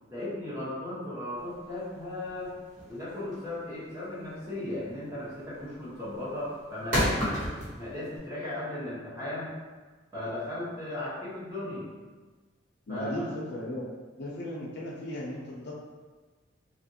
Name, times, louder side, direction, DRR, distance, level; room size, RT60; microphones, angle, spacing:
voice 1, 0.1-2.6 2.9-9.5 10.1-11.9 12.9-13.3, left 1 dB, 15° right, -11 dB, 1.0 m, -36 dB
sound 1, 1.4-8.2, equal, 40° right, 1.3 m, -33 dB
voice 2, 12.9-13.8 14.2-15.7, equal, 55° left, -5 dB, 0.6 m, -36 dB
3.0 x 2.4 x 2.7 m, 1.4 s
head